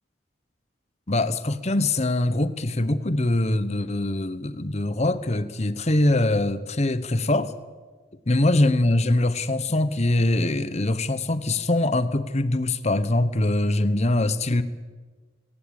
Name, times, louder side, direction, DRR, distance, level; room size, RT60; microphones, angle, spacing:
voice 1, 1.1-7.5 8.3-14.6, left 2 dB, 35° left, 13 dB, 1.1 m, -23 dB
21.0 x 16.0 x 9.0 m, 1.4 s
head